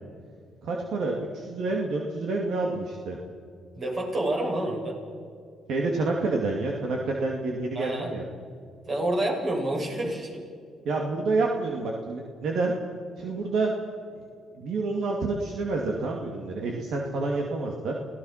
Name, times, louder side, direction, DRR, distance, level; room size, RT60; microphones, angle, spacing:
voice 1, 0.6-3.2 5.7-8.2 10.8-12.7 13.2-13.7 14.6-17.9, right 3 dB, 75° right, 0 dB, 2.6 m, -28 dB
voice 2, 3.8-5.0 7.7-8.1 8.9-10.4, right 1 dB, 45° right, -1 dB, 7.8 m, -28 dB
29.5 x 18.0 x 5.9 m, 2.3 s
cardioid pair, 90°, 0 cm